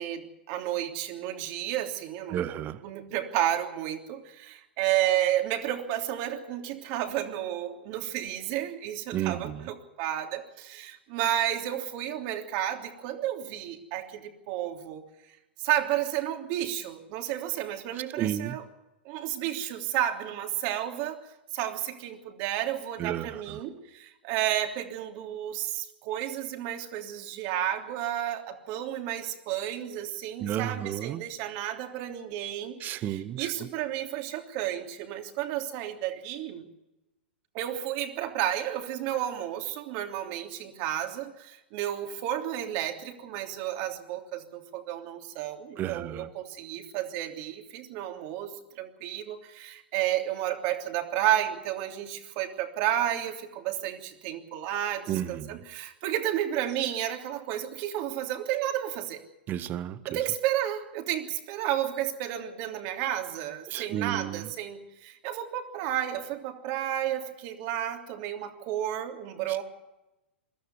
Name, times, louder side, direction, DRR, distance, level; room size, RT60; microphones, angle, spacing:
voice 1, 0.0-2.5 2.8-15.0 15.6-18.6 19.0-36.6 37.5-59.2 60.1-69.6, right 12 dB, 45° right, 5 dB, 3.2 m, -32 dB
voice 2, 2.3-2.8 9.1-9.7 17.9-18.6 23.0-23.6 30.4-31.2 32.8-33.7 45.8-46.3 55.1-55.6 59.5-60.0 63.7-64.5 69.5-69.6, right 11 dB, 30° right, 15 dB, 1.2 m, -32 dB
22.5 x 13.5 x 9.6 m, 0.96 s
hypercardioid pair, 110°, 6 cm